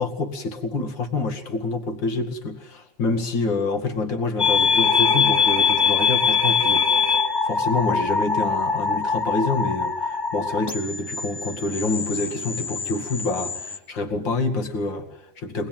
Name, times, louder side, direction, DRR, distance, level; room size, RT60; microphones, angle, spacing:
voice 1, 0.0-6.8 7.4-15.7, left 3 dB, 75° left, 3 dB, 2.9 m, -27 dB
sound 1, 4.4-13.8, left 5 dB, 20° left, 0.7 m, -23 dB
23.0 x 20.0 x 9.0 m, 0.85 s
omnidirectional pair, 2.0 m